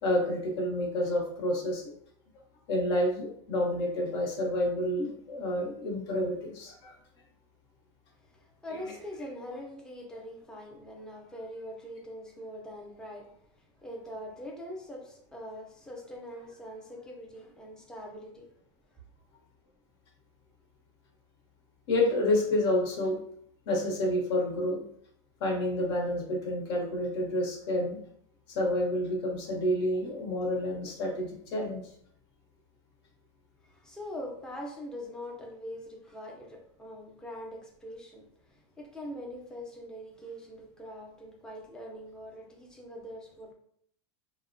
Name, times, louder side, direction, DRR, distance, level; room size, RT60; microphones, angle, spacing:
voice 1, 0.0-1.8 2.7-6.9 21.9-23.2 23.7-24.8 25.4-28.0 28.5-31.9, left 1 dB, 65° left, 1 dB, 0.9 m, -29 dB
voice 2, 8.3-13.3 13.8-18.5 33.6-43.5, equal, 5° left, -1 dB, 0.5 m, -43 dB
2.9 x 2.1 x 2.6 m, 0.65 s
supercardioid pair, 145°, 15 cm